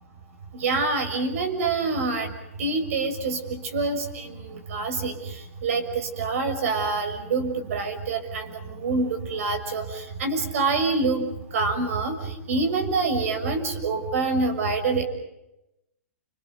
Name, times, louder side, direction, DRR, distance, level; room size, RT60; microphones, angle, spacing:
voice 1, 0.5-2.3 2.6-15.0, right 3 dB, 70° right, 7 dB, 6.5 m, -26 dB
29.5 x 27.0 x 5.2 m, 0.89 s
hypercardioid pair, 150°, 8 cm